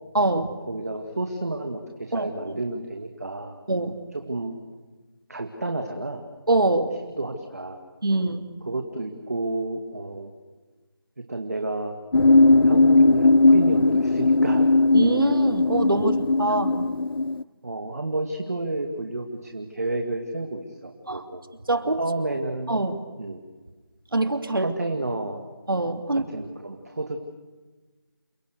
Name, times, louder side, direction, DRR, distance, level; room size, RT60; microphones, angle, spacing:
voice 1, 0.1-0.6 2.1-2.3 3.7-4.0 6.5-6.9 8.0-8.4 14.9-16.8 21.1-21.2 21.7-22.0 22.7-23.0 24.1-24.7 25.7-26.3, right 2 dB, 70° right, 7 dB, 3.1 m, -24 dB
voice 2, 0.7-1.8 2.1-3.6 4.1-4.6 5.3-6.2 7.2-7.8 8.6-10.3 11.2-12.0 12.6-14.7 16.8-16.9 17.6-21.4 22.0-22.9 23.2-23.4 24.6-25.5 26.1-27.2, right 2 dB, 45° right, 4 dB, 2.4 m, -31 dB
sound 1, 12.1-17.4, left 2 dB, 75° left, 0.7 m, -18 dB
29.0 x 26.5 x 6.7 m, 1.3 s
figure-of-eight pair, 175°, 12 cm